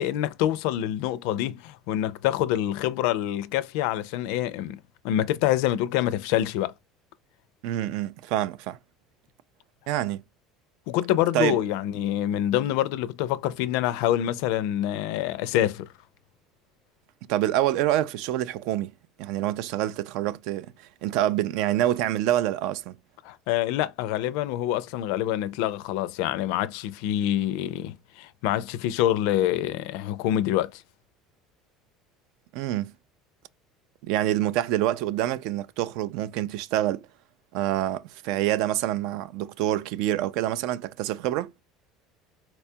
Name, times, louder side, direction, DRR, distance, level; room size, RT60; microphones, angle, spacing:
voice 1, 0.0-6.7 10.9-15.9 23.2-30.8, left 12 dB, 70° left, 0.4 m, -26 dB
voice 2, 7.6-8.8 9.9-10.2 11.3-11.6 17.3-18.9 19.2-23.0 32.5-32.9 34.0-37.1 37.5-41.5, right 13 dB, 65° right, 0.3 m, -26 dB
4.1 x 2.3 x 2.6 m
cardioid pair, 155°, 0 cm